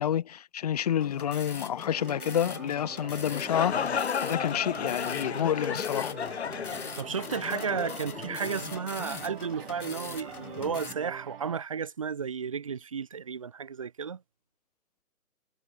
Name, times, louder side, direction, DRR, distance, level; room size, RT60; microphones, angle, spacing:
voice 1, 0.0-6.1, left 10 dB, 25° left, 1.9 m, -29 dB
sound 1, 1.0-10.9, left 5 dB, 70° left, 3.1 m, -42 dB
sound 2, 1.9-11.6, right 8 dB, 35° right, 8.0 m, -45 dB
sound 3, 3.1-8.8, left 7 dB, 45° left, 2.8 m, -34 dB
voice 2, 7.0-14.2, right 6 dB, 20° right, 1.0 m, -33 dB
hypercardioid pair, 165°, 45 cm